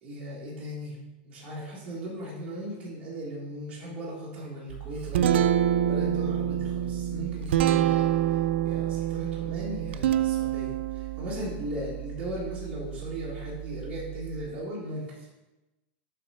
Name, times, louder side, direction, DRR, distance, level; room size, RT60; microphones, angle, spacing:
voice 1, 0.0-1.0 1.2-15.3, equal, 20° right, -7 dB, 1.5 m, -38 dB
Guitar, 4.7-14.5, right 11 dB, 90° right, 0.4 m, -27 dB
6.7 x 3.7 x 5.6 m, 1.1 s
supercardioid pair, 170°, 6 cm